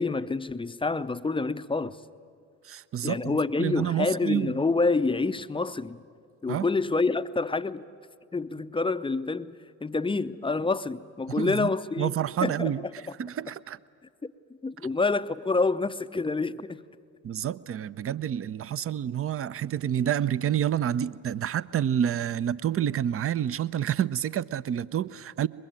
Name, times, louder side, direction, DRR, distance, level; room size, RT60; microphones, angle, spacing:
voice 1, 0.0-2.0 3.0-6.0 6.4-7.8 8.3-12.2 12.4-12.7 14.2-14.3 14.6-16.8, left 3 dB, 10° left, 0.6 m, -27 dB
voice 2, 2.6-4.6 6.5-6.7 11.4-11.7 12.0-12.8 13.2-13.8 17.2-25.5, right 10 dB, 30° right, 0.6 m, -28 dB
23.5 x 22.0 x 9.1 m
figure-of-eight pair, 45°, 43 cm